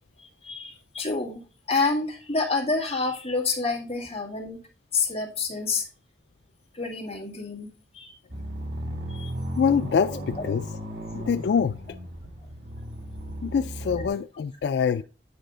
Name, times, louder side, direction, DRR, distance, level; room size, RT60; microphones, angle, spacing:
voice 1, 0.2-1.4 1.7-4.6 4.9-5.9 6.7-8.1 9.1-9.3 10.1-10.2, left 4 dB, 35° left, 2.0 m, -28 dB
sound 1, 8.3-14.1, equal, 85° right, 2.0 m, -35 dB
voice 2, 9.6-10.6 11.1-11.8 13.4-15.0, left 6 dB, 80° left, 0.3 m, -24 dB
8.7 x 4.8 x 3.8 m
head